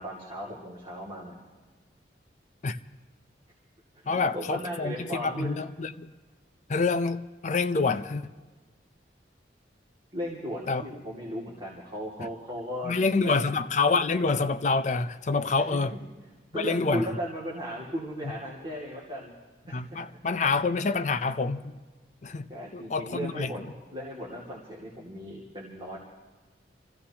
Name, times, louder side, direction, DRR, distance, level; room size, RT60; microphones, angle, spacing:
voice 1, 0.0-1.4 3.9-5.5 10.1-13.4 15.5-15.8 16.5-19.3 19.7-19.8 22.5-26.0, equal, 30° right, 2.3 m, -36 dB
voice 2, 4.1-6.1 6.7-8.3 10.7-10.8 12.8-15.9 16.5-17.1 19.7-21.8 22.2-23.5, left 4 dB, 40° left, 0.5 m, -27 dB
27.0 x 15.5 x 2.9 m
head